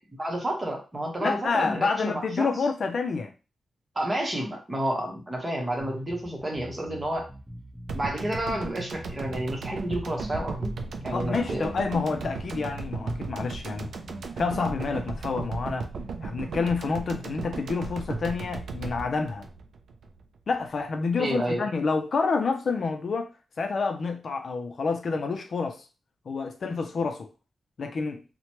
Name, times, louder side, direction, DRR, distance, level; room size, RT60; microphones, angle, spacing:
voice 1, 0.2-2.5 4.0-7.3 7.9-10.7 11.0-11.7 21.2-21.7, right 1 dB, 20° right, 0.9 m, -30 dB
voice 2, 1.2-3.3 11.1-13.9 14.4-15.8 16.2-19.4 20.5-23.3 23.6-25.8 26.3-27.3 27.8-28.2, left 4 dB, 55° left, 0.4 m, -28 dB
sound 1, 5.8-15.4, equal, ahead, 0.9 m, -43 dB
sound 2, 7.9-20.2 20.5-20.6, right 4 dB, 85° right, 0.4 m, -36 dB
3.0 x 2.1 x 2.9 m
wide cardioid pair, 125°, 0 cm